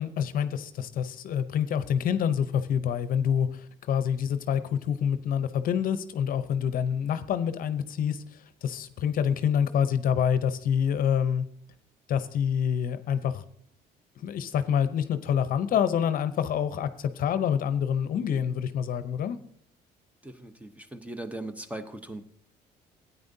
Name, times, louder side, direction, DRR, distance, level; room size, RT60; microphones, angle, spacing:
voice 1, 0.0-8.2 8.6-11.5 12.1-13.4 14.2-19.4, left 8 dB, 55° left, 12 dB, 0.7 m, -27 dB
voice 2, 20.2-22.2, right 1 dB, 10° right, 9 dB, 0.8 m, -39 dB
13.5 x 9.3 x 2.7 m, 0.66 s
cardioid pair, 110°, 17 cm